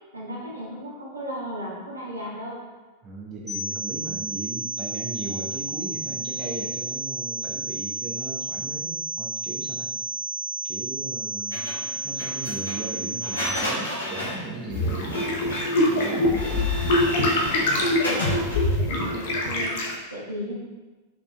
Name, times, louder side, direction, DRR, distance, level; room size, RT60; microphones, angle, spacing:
voice 1, 0.1-2.6 16.6-16.7 18.0-18.5 18.8-20.6, equal, 80° right, -5 dB, 1.2 m, -35 dB
voice 2, 3.0-9.9 10.6-11.7 12.0-15.3 15.7-16.7 17.6-17.9, right 3 dB, 30° right, -3 dB, 0.8 m, -37 dB
sound 1, 3.5-13.5, right 2 dB, 5° left, 0.8 m, -32 dB
Printer, 11.5-18.7, equal, 75° left, 1.3 m, -33 dB
sound 2, 14.7-19.9, left 1 dB, 55° left, 0.7 m, -24 dB
5.4 x 4.2 x 2.2 m, 1.2 s
figure-of-eight pair, 90°, 0 cm